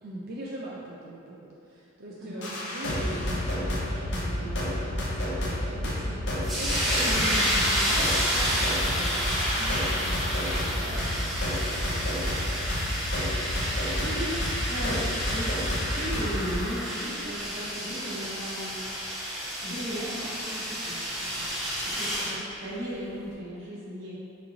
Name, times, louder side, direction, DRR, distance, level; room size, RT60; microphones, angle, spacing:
voice 1, 0.0-11.6 11.9-12.5, right 1 dB, 50° right, -6 dB, 0.4 m, -41 dB
voice 2, 2.2-2.5 7.0-7.5 13.8-15.0 15.3-19.0 19.6-24.1, equal, 90° right, -9 dB, 1.1 m, -36 dB
sound 1, 2.4-16.6, left 1 dB, 60° left, 0.5 m, -30 dB
sound 2, 6.4-22.4, equal, ahead, 1.1 m, -30 dB
4.2 x 2.6 x 2.7 m, 2.6 s
head